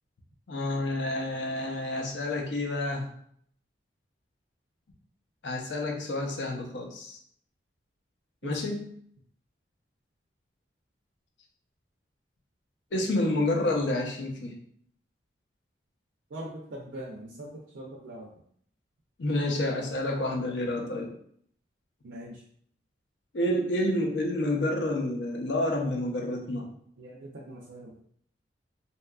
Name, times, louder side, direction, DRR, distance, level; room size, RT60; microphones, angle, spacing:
voice 1, 0.5-3.1 5.4-7.2 8.4-8.9 12.9-14.6 19.2-21.1 23.3-26.7, left 1 dB, 75° left, 1 dB, 0.6 m, -29 dB
voice 2, 16.3-18.3 22.0-22.4 27.0-28.0, right 1 dB, 70° right, -2 dB, 0.4 m, -42 dB
2.7 x 2.3 x 2.3 m, 0.64 s
head